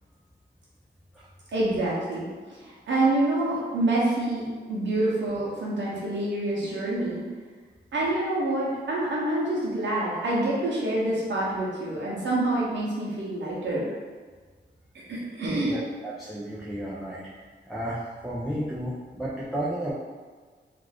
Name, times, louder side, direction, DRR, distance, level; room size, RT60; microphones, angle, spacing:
voice 1, 1.5-7.2 7.9-13.9 14.9-15.8, right 1 dB, 90° right, -6 dB, 0.7 m, -27 dB
voice 2, 15.6-17.3 17.7-19.9, right 1 dB, ahead, -8 dB, 0.3 m, -33 dB
2.4 x 2.3 x 3.3 m, 1.5 s
wide cardioid pair, 175°, 18 cm